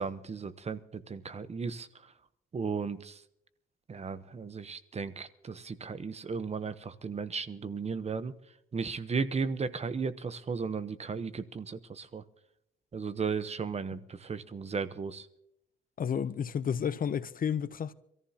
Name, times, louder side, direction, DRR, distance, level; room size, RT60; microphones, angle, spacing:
voice 1, 0.0-1.9 2.5-3.2 3.9-8.3 8.7-12.2 12.9-15.3, right 5 dB, 35° right, 0.9 m, -35 dB
voice 2, 16.0-17.9, left 7 dB, 45° left, 0.7 m, -31 dB
25.5 x 14.5 x 2.9 m
cardioid pair, 90°, 20 cm